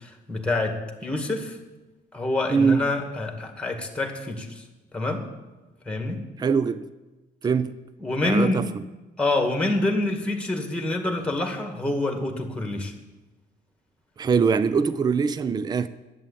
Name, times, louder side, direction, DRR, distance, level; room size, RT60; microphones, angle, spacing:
voice 1, 0.0-1.6 2.1-4.6 4.9-5.3 5.9-6.2 8.0-8.6 9.2-12.9, left 2 dB, 5° left, 2.0 m, -26 dB
voice 2, 2.5-2.8 6.4-6.9 7.4-7.8 8.2-8.7 14.2-15.9, right 5 dB, 25° right, 0.5 m, -22 dB
11.0 x 8.4 x 8.5 m
cardioid pair, 110°, 17 cm